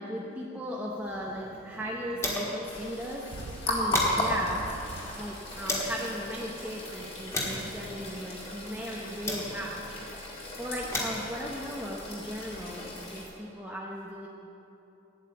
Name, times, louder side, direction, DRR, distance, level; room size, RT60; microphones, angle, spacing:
voice 1, 0.0-3.2 3.7-4.7 5.2-14.3, equal, 10° right, -4 dB, 0.8 m, -37 dB
sound 1, 0.9-2.7 3.0-3.1 3.5-6.0 6.6-9.9 10.6-12.8, left 1 dB, 15° left, 1.6 m, -36 dB
sound 2, 2.6-13.2, left 1 dB, 30° left, 2.0 m, -36 dB
sound 3, 3.3-5.7 5.9-6.0 7.3-7.4 7.7-8.3 8.6-8.7, right 3 dB, 80° right, 0.5 m, -44 dB
9.7 x 8.8 x 7.7 m, 3.0 s
head